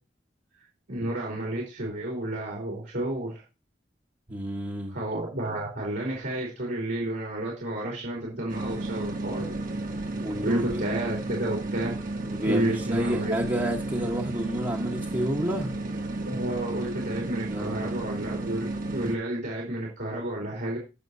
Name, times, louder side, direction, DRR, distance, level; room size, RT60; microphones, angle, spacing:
voice 1, 0.9-3.4 4.9-9.6 10.4-11.9 12.4-13.3 16.2-20.8, right 1 dB, 70° right, 3.1 m, -31 dB
voice 2, 4.3-5.0 10.2-10.8 12.3-15.7 17.5-17.9, right 1 dB, 25° right, 1.2 m, -30 dB
sound 1, 8.5-19.2, right 2 dB, 50° right, 1.5 m, -33 dB
17.0 x 6.0 x 2.7 m
head